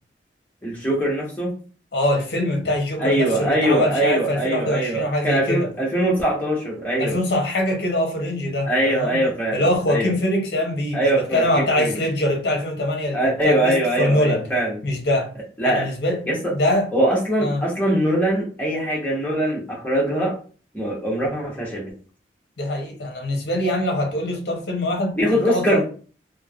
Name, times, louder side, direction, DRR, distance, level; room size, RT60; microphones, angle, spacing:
voice 1, 0.6-1.5 3.0-7.2 8.7-9.6 9.9-10.1 10.9-12.0 13.1-14.8 15.6-15.9 16.3-16.5 16.9-20.4 20.7-21.9 25.1-25.8, right 1 dB, 10° left, 0.9 m, -22 dB
voice 2, 1.9-5.7 7.0-9.2 9.5-14.4 14.8-15.3 15.6-16.2 16.5-16.9 17.4-17.7 22.6-25.8, left 1 dB, 65° left, 0.6 m, -23 dB
3.2 x 2.1 x 2.2 m
head